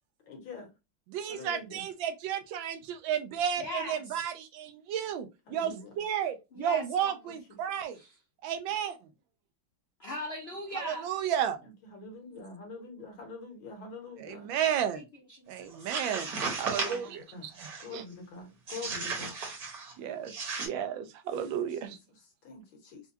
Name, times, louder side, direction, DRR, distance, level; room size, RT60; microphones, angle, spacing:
voice 1, 0.3-0.7 1.3-1.8 5.5-5.9 11.6-14.5 16.8-17.5 17.8-19.3 21.8-23.0, left 4 dB, 70° left, 2.0 m, -45 dB
voice 2, 1.1-8.0 8.4-9.0 10.8-11.6 14.2-15.0 15.5-16.3 16.6-17.5 17.9-18.0 20.0-22.0, right 9 dB, 75° right, 1.3 m, -33 dB
voice 3, 3.6-4.3 6.5-7.2 7.9-8.2 10.0-11.1 14.9-15.5 15.8-16.0, left 1 dB, 55° left, 0.7 m, -40 dB
sound 1, 15.7-17.1 17.5-17.9 18.7-19.9 20.3-20.7, right 4 dB, 55° right, 1.4 m, -35 dB
4.4 x 2.2 x 2.7 m
omnidirectional pair, 2.2 m